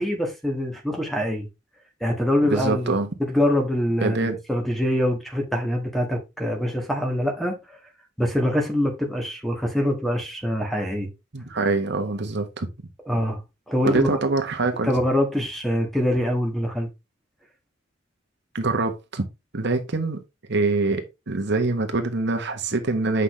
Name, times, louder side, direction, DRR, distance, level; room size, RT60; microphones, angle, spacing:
voice 1, 0.0-1.5 2.0-7.8 8.2-11.1 13.1-13.4 13.7-14.2 14.8-16.9, left 1 dB, ahead, 1.8 m, -24 dB
voice 2, 2.4-3.1 4.0-4.4 11.3-12.7 13.8-14.9 18.5-19.2 19.5-20.2 20.5-23.2, right 3 dB, 60° right, 1.2 m, -24 dB
8.1 x 5.8 x 3.3 m
head